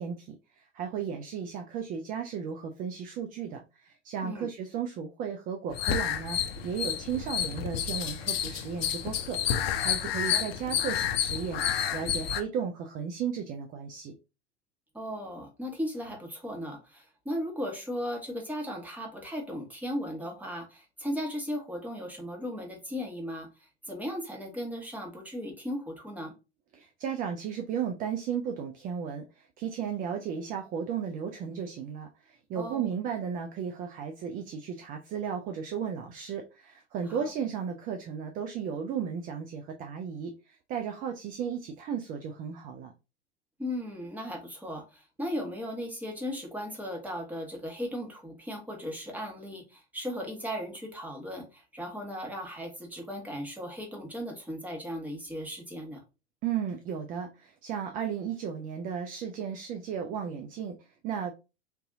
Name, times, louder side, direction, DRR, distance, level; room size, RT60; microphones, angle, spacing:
voice 1, 0.0-11.6 11.9-14.1 26.7-42.9 56.4-61.3, right 7 dB, 25° right, 5 dB, 0.4 m, -35 dB
sound 1, 5.7-12.4, left 9 dB, 60° left, 0.6 m, -30 dB
voice 2, 14.9-26.3 32.5-32.9 37.1-37.3 43.6-56.0, equal, 5° right, 0 dB, 1.1 m, -37 dB
3.7 x 2.6 x 2.6 m, 0.29 s
figure-of-eight pair, 85°, 34 cm